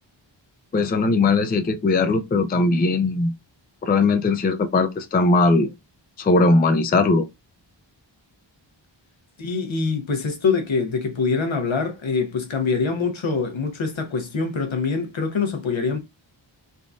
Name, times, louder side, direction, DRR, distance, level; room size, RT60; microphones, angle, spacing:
voice 1, 0.7-3.3 3.8-5.7 6.2-7.3, left 3 dB, 20° left, 0.4 m, -19 dB
voice 2, 9.4-16.0, left 4 dB, 75° left, 0.9 m, -24 dB
3.6 x 2.5 x 2.3 m
wide cardioid pair, 65°, 48 cm